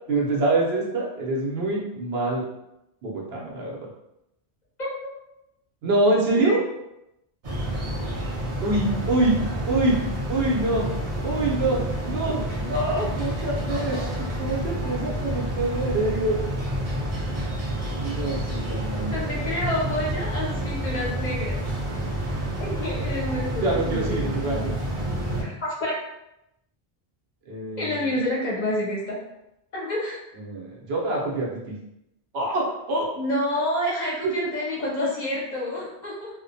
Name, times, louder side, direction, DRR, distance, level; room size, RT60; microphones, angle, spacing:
voice 1, 0.1-2.4 3.0-3.8 5.8-6.6 8.6-9.3 9.7-10.0 10.3-10.9 11.2-16.4 18.0-19.5 23.6-24.7 27.5-28.1 30.4-31.7 32.3-33.1 34.2-34.3 34.8-35.1, right 2 dB, 70° right, -3 dB, 0.9 m, -25 dB
sound 1, 7.4-25.4, right 1 dB, 45° right, 0.5 m, -29 dB
voice 2, 19.1-21.7 22.6-24.7 25.4-26.0 27.8-29.2 29.7-30.2 33.1-36.3, left 1 dB, 50° left, -5 dB, 0.7 m, -29 dB
2.6 x 2.1 x 2.6 m, 0.87 s
omnidirectional pair, 1.1 m